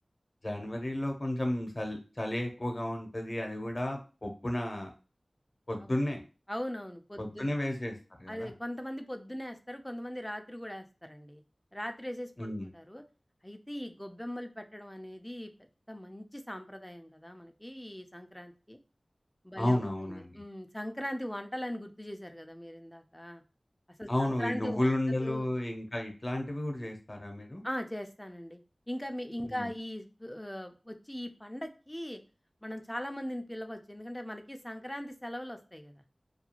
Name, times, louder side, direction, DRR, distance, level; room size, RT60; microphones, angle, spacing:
voice 1, 0.4-4.9 5.7-6.2 7.2-8.5 12.4-12.7 19.6-20.4 24.1-27.6 29.5-29.7, left 1 dB, 45° left, 3 dB, 0.7 m, -33 dB
voice 2, 6.5-7.5 8.3-11.4 11.7-13.0 13.4-15.5 15.9-18.8 19.4-23.4 24.0-25.5 27.6-28.6 28.9-32.2 32.6-36.0, equal, 10° left, 6 dB, 0.4 m, -40 dB
2.4 x 2.3 x 2.8 m, 0.34 s
wide cardioid pair, 40°, 0 cm